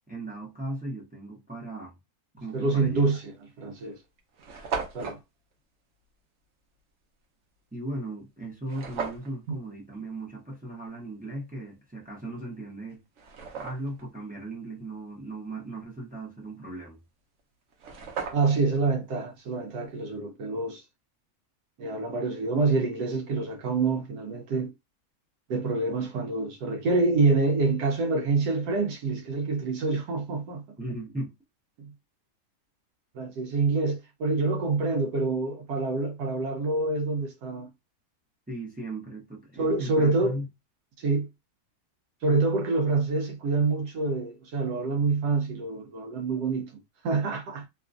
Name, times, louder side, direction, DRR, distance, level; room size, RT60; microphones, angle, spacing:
voice 1, 0.1-1.9 2.3-3.0 7.7-13.0 13.6-17.0 30.8-31.3 38.5-40.5, right 1 dB, 15° right, 0.3 m, -37 dB
voice 2, 2.5-4.0 4.9-5.2 18.3-20.8 21.8-24.7 25.5-30.7 31.8-31.9 33.1-37.7 39.6-40.4 41.0-41.3 42.2-47.7, right 3 dB, 90° right, 1.2 m, -26 dB
sound 1, 2.9-3.0 3.8-3.9 4.0-4.1 4.3-5.2 8.7-9.3 12.2-12.3 12.9-14.0 17.4-17.5 17.7-18.7, right 5 dB, 60° right, 0.9 m, -36 dB
2.9 x 2.4 x 2.4 m
omnidirectional pair, 1.6 m